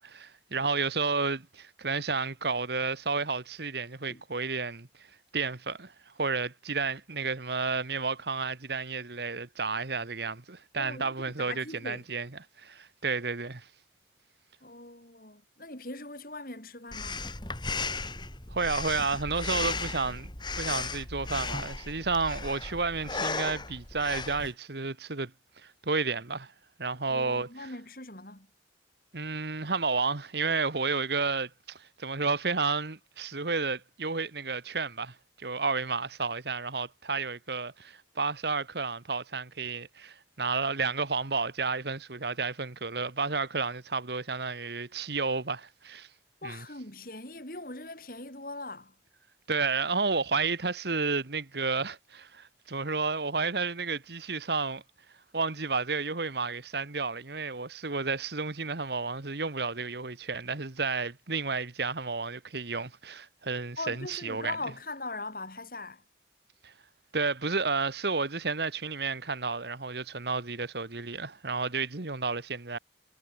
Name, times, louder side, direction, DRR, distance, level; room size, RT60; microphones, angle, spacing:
voice 1, 0.0-4.9 5.3-5.9 6.2-12.3 12.6-13.7 18.5-20.3 20.6-25.3 25.6-26.5 26.8-27.7 29.1-46.1 46.4-46.6 49.5-54.8 55.3-64.5 66.6-66.7 67.1-72.8, right 4 dB, 65° right, 1.4 m, -31 dB
voice 2, 10.8-12.1 14.6-17.2 27.1-28.5 46.4-48.9 63.8-66.0, left 2 dB, 50° left, 6.9 m, -41 dB
Breathing, 16.9-24.5, left 4 dB, 25° left, 4.1 m, -35 dB
head